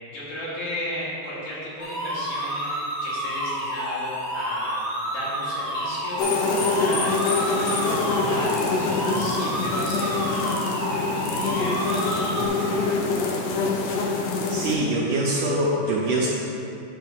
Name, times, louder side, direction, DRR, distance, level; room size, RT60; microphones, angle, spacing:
voice 1, 0.1-4.8 5.0-10.5 10.9-13.0, equal, 55° left, -10 dB, 3.4 m, -35 dB
sound 1, 1.8-12.5, equal, 30° left, 1.0 m, -29 dB
sound 2, 6.2-14.7, left 3 dB, 75° left, 1.9 m, -25 dB
voice 2, 14.5-16.3, right 1 dB, 75° right, -5 dB, 2.1 m, -23 dB
10.0 x 3.4 x 6.8 m, 2.8 s
omnidirectional pair, 4.4 m